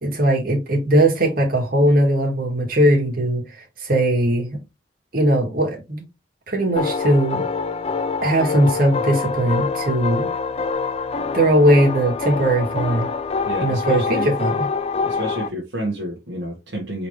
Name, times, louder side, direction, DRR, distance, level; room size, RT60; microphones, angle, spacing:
voice 1, 0.0-4.6 5.1-6.0 6.5-7.4 8.2-10.3 11.3-13.1 13.6-14.5, right 1 dB, 50° right, 1.8 m, -19 dB
sound 1, 6.8-15.5, left 4 dB, 35° left, 0.4 m, -25 dB
voice 2, 13.4-14.3 15.1-17.1, equal, 70° right, 1.3 m, -29 dB
4.4 x 3.9 x 3.1 m
head